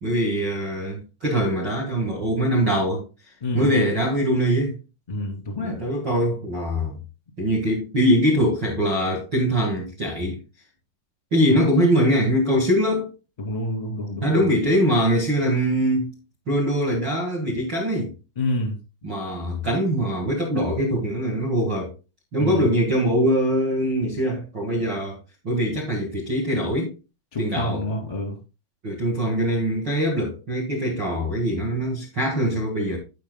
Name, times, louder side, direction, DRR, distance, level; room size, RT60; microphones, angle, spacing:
voice 1, 0.0-3.0 3.5-4.8 5.6-7.0 7.4-10.4 11.3-13.1 14.2-16.1 16.5-18.1 19.0-21.9 22.3-25.2 25.4-26.9 27.4-27.8 28.8-33.0, equal, 50° right, 1.3 m, -22 dB
voice 2, 5.1-5.8 11.5-11.7 13.4-14.5 18.3-18.8 22.4-22.7 27.3-28.3, left 1 dB, 15° left, 1.3 m, -28 dB
14.5 x 5.8 x 2.2 m
omnidirectional pair, 5.1 m